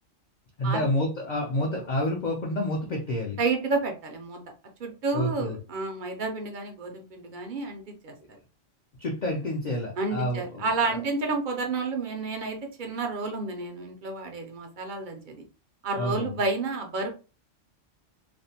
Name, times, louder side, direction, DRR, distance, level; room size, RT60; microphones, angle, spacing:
voice 1, 0.6-3.4 5.1-5.6 9.0-11.0 15.9-16.3, left 1 dB, 55° left, -1 dB, 0.5 m, -29 dB
voice 2, 3.4-4.4 4.8-8.1 10.0-15.4 15.8-17.1, right 3 dB, 55° right, 3 dB, 0.5 m, -30 dB
2.5 x 2.0 x 2.7 m, 0.33 s
omnidirectional pair, 1.3 m